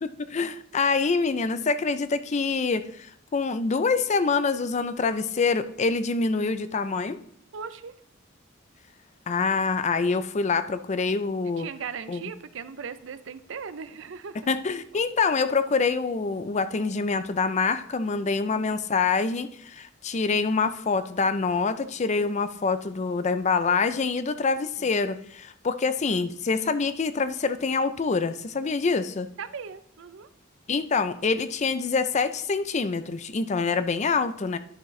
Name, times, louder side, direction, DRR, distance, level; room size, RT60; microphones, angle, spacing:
voice 1, 0.0-7.2 9.3-11.7 12.1-12.2 14.5-29.3 30.7-34.6, left 4 dB, 35° left, 12 dB, 0.4 m, -26 dB
voice 2, 7.5-7.9 11.6-14.5 18.5-18.8 24.8-25.0 29.4-30.3, right 6 dB, 70° right, 13 dB, 0.5 m, -38 dB
11.0 x 6.0 x 3.2 m, 0.63 s
head